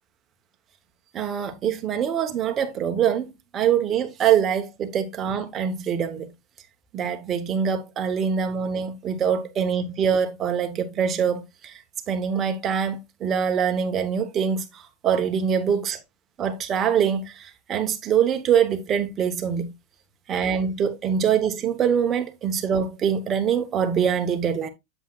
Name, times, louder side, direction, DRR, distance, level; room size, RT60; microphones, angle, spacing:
voice 1, 1.1-6.3 6.9-11.7 12.1-14.6 15.0-16.0 16.4-17.2 17.7-19.7 20.3-24.7, right 7 dB, 25° right, 1.1 m, -24 dB
8.0 x 7.4 x 2.4 m
supercardioid pair, 155°, 0 cm